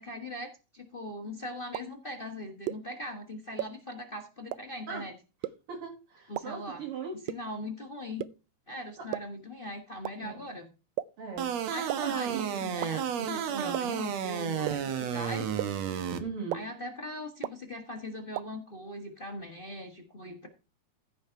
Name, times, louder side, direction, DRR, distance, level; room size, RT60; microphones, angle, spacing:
voice 1, 0.0-5.1 6.3-6.8 7.3-8.2 8.7-10.7 11.6-15.6 16.5-20.5, left 1 dB, 60° left, 3 dB, 0.5 m, -40 dB
sound 1, 1.7-1.8 2.7-2.8 3.6-3.7 4.5-4.6 5.4-5.5 6.4-6.5 7.3-7.4 8.2-8.3 9.1-9.2 10.0-10.1 11.0-11.1 11.9-12.0 12.8-12.9 13.7-13.8 14.7-14.8 15.6-15.7 16.5-16.6 17.4-17.5 18.4-18.5, right 15 dB, 85° right, 2.3 m, -31 dB
voice 2, 5.7-7.2 9.0-9.1 10.2-10.4 11.2-11.5 12.0-12.6 13.5-13.8 16.2-16.7, right 5 dB, 45° right, 1 dB, 2.4 m, -39 dB
sound 2, 11.4-16.2, right 8 dB, 60° right, 2.1 m, -32 dB
15.5 x 5.3 x 4.6 m, 0.31 s
omnidirectional pair, 3.8 m